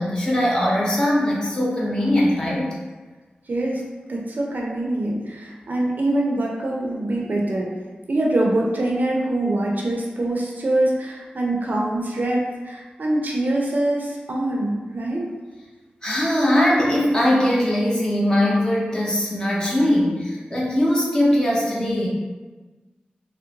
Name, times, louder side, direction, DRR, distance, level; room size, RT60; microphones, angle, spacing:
voice 1, 0.0-2.7 16.0-22.1, left 1 dB, 25° left, -5 dB, 0.9 m, -20 dB
voice 2, 3.5-3.8 4.1-7.7 8.1-15.3, right 1 dB, 60° right, -2 dB, 0.6 m, -24 dB
3.5 x 2.1 x 2.8 m, 1.3 s
cardioid pair, 55°, 3 cm